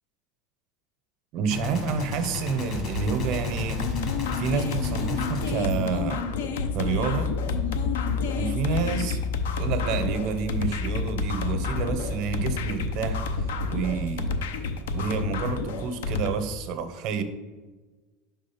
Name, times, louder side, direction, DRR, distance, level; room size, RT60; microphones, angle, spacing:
voice 1, 1.3-3.8 4.4-6.3 6.7-7.3 8.4-9.2 9.6-13.2 13.7-14.3 14.9-17.2, right 6 dB, 55° right, 9 dB, 0.7 m, -29 dB
Gunshot gunfire, 1.5-6.7, left 4 dB, 50° left, 1.4 m, -34 dB
sound 1, 2.7-14.5, left 3 dB, 5° left, 0.5 m, -33 dB
sound 2, 3.8-16.3, left 5 dB, 85° left, 0.6 m, -30 dB
5.2 x 3.7 x 5.6 m, 1.3 s
hypercardioid pair, 95°, 0 cm